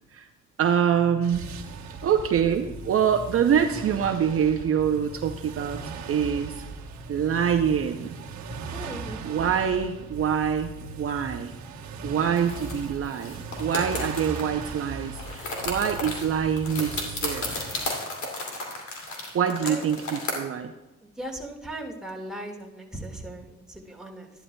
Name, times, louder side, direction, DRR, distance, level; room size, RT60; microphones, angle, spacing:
voice 1, 0.6-1.5 2.0-5.8 6.1-6.6 7.1-8.2 9.2-11.5 12.0-17.5 19.3-20.7, right 8 dB, 50° right, 6 dB, 0.6 m, -25 dB
sound 1, 1.2-17.9, right 3 dB, 65° right, 1.1 m, -39 dB
voice 2, 8.7-9.2 19.6-19.8 21.2-24.3, right 1 dB, ahead, -1 dB, 1.8 m, -38 dB
sound 2, 12.4-14.8 15.0-20.3, left 2 dB, 70° left, 2.6 m, -34 dB
12.5 x 11.0 x 2.2 m, 1.1 s
cardioid pair, 90°, 30 cm